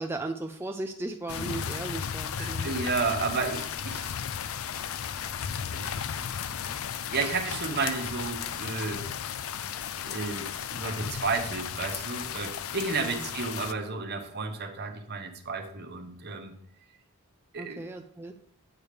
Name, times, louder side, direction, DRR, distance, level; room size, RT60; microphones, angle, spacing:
voice 1, 0.0-2.7 13.0-13.2 17.6-18.3, right 2 dB, 10° right, 4 dB, 0.3 m, -36 dB
sound 1, 1.3-13.7, left 8 dB, 65° left, 0.4 m, -35 dB
voice 2, 2.4-4.1 4.5-4.7 5.7-6.2 7.1-9.1 10.0-16.5 17.5-17.8, right 4 dB, 45° right, 5 dB, 0.9 m, -32 dB
8.5 x 3.3 x 6.6 m, 0.66 s
head